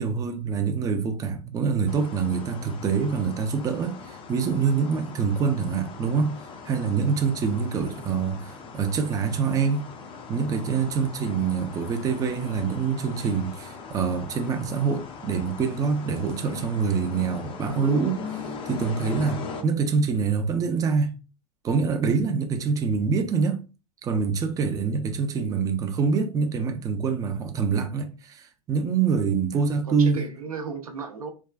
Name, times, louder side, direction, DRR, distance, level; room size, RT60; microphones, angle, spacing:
voice 1, 0.0-6.4 6.7-9.9 10.3-18.4 18.7-21.1 21.6-23.6 24.0-30.2, right 5 dB, 20° right, 0.5 m, -25 dB
sound 1, 1.9-19.6, left 5 dB, 30° left, 0.5 m, -40 dB
voice 2, 25.3-25.7 29.5-31.3, right 5 dB, 85° right, 0.7 m, -36 dB
3.4 x 2.3 x 2.2 m
hypercardioid pair, 100°, 18 cm